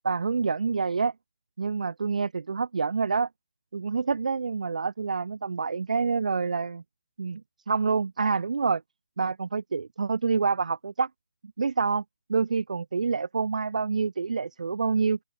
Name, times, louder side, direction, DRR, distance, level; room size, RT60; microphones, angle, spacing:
voice 1, 0.0-1.1 1.6-3.3 3.7-6.8 7.2-7.4 7.7-8.8 9.2-11.1 11.6-12.0 12.3-15.2, right 5 dB, 60° right, 0.8 m, -27 dB
open air
figure-of-eight pair, 155°, 4 cm